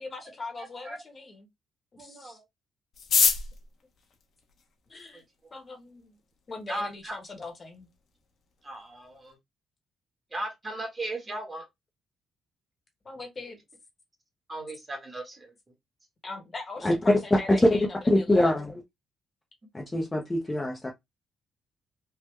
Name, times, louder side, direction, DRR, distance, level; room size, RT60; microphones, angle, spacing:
voice 1, 0.0-1.5 2.0-2.4 4.9-5.2 5.5-6.2 6.5-7.9 13.0-13.6 16.2-18.5, left 3 dB, 30° left, 1.0 m, -41 dB
voice 2, 2.0-2.4 5.1-5.2 6.7-7.2 8.6-9.4 10.3-11.7 14.5-15.5, right 1 dB, 20° right, 1.1 m, -37 dB
sound 1, 2.9-5.2 6.0-6.1 6.3-6.4 6.7-7.1 7.5-7.6 7.7-8.2 8.5-8.7 9.0-9.3, left 5 dB, 55° left, 0.8 m, -27 dB
voice 3, 18.1-18.7 19.7-20.9, left 1 dB, 15° left, 0.5 m, -24 dB
3.5 x 2.0 x 3.1 m
cardioid pair, 130°, 0 cm